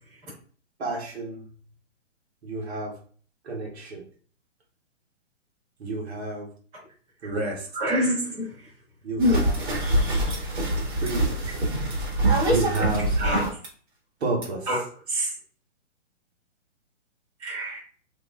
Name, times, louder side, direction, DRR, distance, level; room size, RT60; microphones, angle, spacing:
voice 1, 0.8-1.5 2.4-3.0 3.4-4.0 5.8-6.5 7.2-7.7 9.0-9.6 11.0-11.4 12.4-13.2 14.2-14.7, right 2 dB, 55° right, -2 dB, 1.4 m, -30 dB
voice 2, 7.7-8.5 9.2-9.4 9.8-10.4 13.1-13.6 14.6-14.8 15.1-15.3 17.4-17.8, equal, 10° right, -9 dB, 1.4 m, -26 dB
sound 1, 9.2-13.7 14.4-14.5, right 1 dB, 40° right, 1.6 m, -24 dB
3.9 x 2.9 x 2.4 m, 0.43 s
hypercardioid pair, 165°, 37 cm